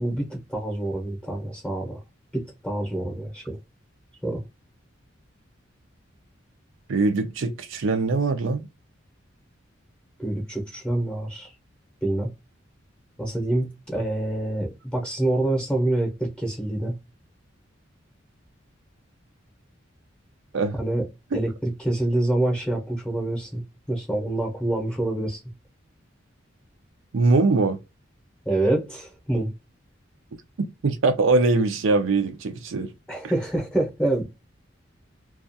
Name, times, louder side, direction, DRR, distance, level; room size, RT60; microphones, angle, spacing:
voice 1, 0.0-2.0 2.3-3.6 4.2-4.4 10.2-11.5 12.0-12.3 13.2-16.9 20.8-21.1 21.3-23.6 23.9-25.4 28.5-29.5 33.1-34.2, right 1 dB, 5° left, 0.7 m, -26 dB
voice 2, 6.9-8.7 20.5-20.8 27.1-27.8 30.8-32.9, right 3 dB, 75° right, 0.5 m, -22 dB
2.3 x 2.3 x 2.6 m
head